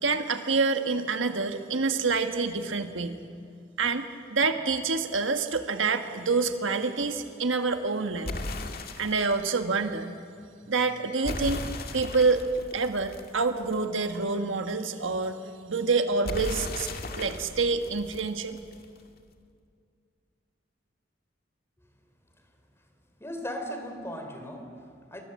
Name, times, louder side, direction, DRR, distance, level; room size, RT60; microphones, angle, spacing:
voice 1, 0.0-3.2 3.8-4.0 4.3-8.3 9.0-10.1 10.7-11.6 11.9-12.4 12.7-15.4 15.7-16.9 17.2-18.6, right 4 dB, 75° right, 6 dB, 1.4 m, -27 dB
sound 1, 8.2-9.5 11.2-14.0 16.2-19.0, left 2 dB, 55° left, 1.9 m, -37 dB
voice 2, 23.2-25.2, equal, 15° left, 5 dB, 3.4 m, -38 dB
27.5 x 23.5 x 7.6 m, 2.3 s
head